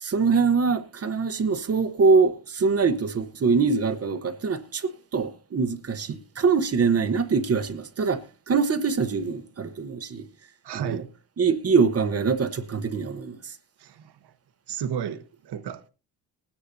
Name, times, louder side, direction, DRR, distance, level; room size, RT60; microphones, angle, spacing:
voice 1, 0.0-10.3 10.7-11.0 11.4-13.4, right 5 dB, 40° right, 0.9 m, -24 dB
voice 2, 10.6-11.1 13.8-14.1 14.7-15.9, right 8 dB, 80° right, 1.2 m, -32 dB
20.5 x 9.8 x 2.6 m
wide cardioid pair, 170°, 39 cm